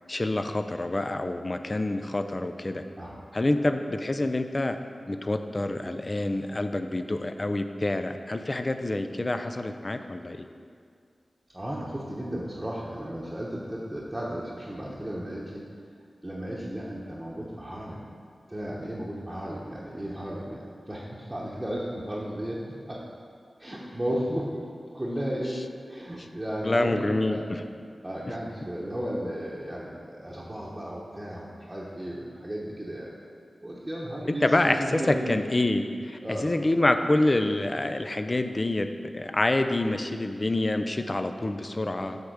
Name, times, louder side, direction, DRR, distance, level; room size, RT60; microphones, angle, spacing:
voice 1, 0.1-2.8 3.3-4.8 5.1-10.5 26.6-27.6 34.3-42.2, left 2 dB, 35° left, 8 dB, 0.4 m, -27 dB
voice 2, 11.5-15.6 16.2-18.0 18.5-23.0 23.6-24.6 24.9-25.6 25.9-27.5 28.0-33.1 33.6-35.3 36.2-36.5, equal, 20° right, -5 dB, 1.0 m, -34 dB
8.0 x 3.5 x 6.4 m, 2.2 s
cardioid pair, 55°, 0 cm